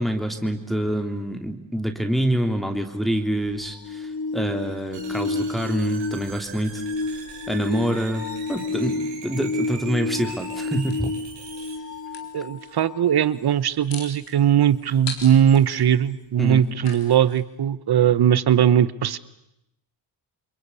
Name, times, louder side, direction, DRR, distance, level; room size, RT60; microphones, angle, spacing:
voice 1, 0.0-6.8 7.5-11.1 16.4-16.7, equal, ahead, 4 dB, 3.0 m, -26 dB
sound 1, 3.4-13.2 15.5-15.6, left 3 dB, 55° left, 2.5 m, -31 dB
sound 2, 4.9-11.8, right 6 dB, 90° right, 5.2 m, -41 dB
sound 3, 10.9-12.3 13.4-17.4, left 5 dB, 75° left, 4.0 m, -40 dB
voice 2, 12.3-19.2, right 9 dB, 60° right, 17 dB, 1.2 m, -19 dB
29.0 x 22.0 x 8.5 m, 0.83 s
cardioid pair, 60°, 42 cm